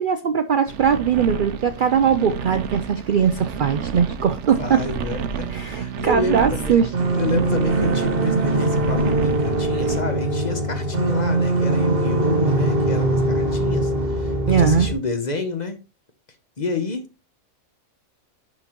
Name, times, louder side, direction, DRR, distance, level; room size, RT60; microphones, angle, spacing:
voice 1, 0.0-4.8 5.5-6.9 14.5-14.9, right 7 dB, 80° right, 0.4 m, -20 dB
sound 1, 0.7-10.0, right 7 dB, 60° right, 0.9 m, -31 dB
voice 2, 4.6-6.8 7.1-15.8 16.6-17.1, left 3 dB, 35° left, 0.8 m, -29 dB
sound 2, 6.9-14.9, right 2 dB, 45° right, 1.3 m, -21 dB
10.5 x 3.9 x 3.0 m
omnidirectional pair, 1.5 m